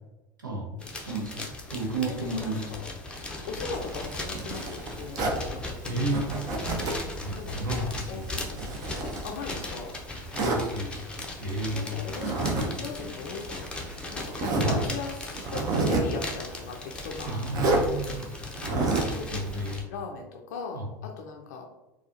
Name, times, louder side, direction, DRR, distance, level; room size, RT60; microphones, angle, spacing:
voice 1, 0.5-0.9 2.1-2.9 3.4-6.0 7.3-9.9 11.7-17.4 19.0-21.6, left 4 dB, 60° left, 1 dB, 0.5 m, -39 dB
sound 1, 0.8-19.8, left 2 dB, 10° left, 0.6 m, -38 dB
voice 2, 1.1-2.7 5.9-6.4 7.2-8.3 10.4-11.1 11.4-11.9 17.2-18.3 19.3-19.8 20.7-20.9, right 2 dB, 80° right, -2 dB, 0.7 m, -32 dB
Zipper (clothing), 3.7-5.4 6.1-7.1 7.5-9.7 10.3-10.6 12.1-12.7 13.0-13.1 13.8-13.9 14.3-14.8 15.3-16.2 17.5-17.8 18.5-19.2, right 2 dB, 40° right, 0.7 m, -28 dB
4.2 x 2.3 x 2.7 m, 1.0 s
figure-of-eight pair, 75°, 10 cm